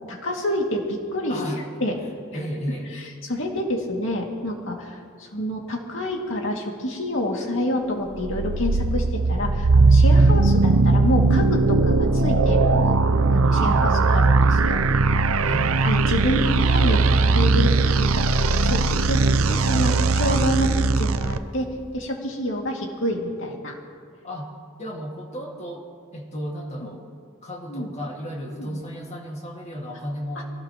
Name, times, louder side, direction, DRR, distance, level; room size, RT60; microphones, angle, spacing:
voice 1, 0.1-1.9 2.9-13.0 13.3-14.8 15.8-23.8 26.8-26.9 27.7-27.9 28.5-28.8 30.4-30.5, left 1 dB, 60° left, 0 dB, 2.4 m, -28 dB
voice 2, 1.3-1.7 2.3-2.9 10.2-10.4 13.5-13.9 15.4-15.7 24.2-24.5 24.8-25.9 26.1-27.0 27.4-30.4, equal, 30° left, -1 dB, 2.1 m, -33 dB
sound 1, 8.1-21.4, right 3 dB, 75° right, 0.6 m, -19 dB
24.0 x 17.5 x 3.1 m, 2.1 s
head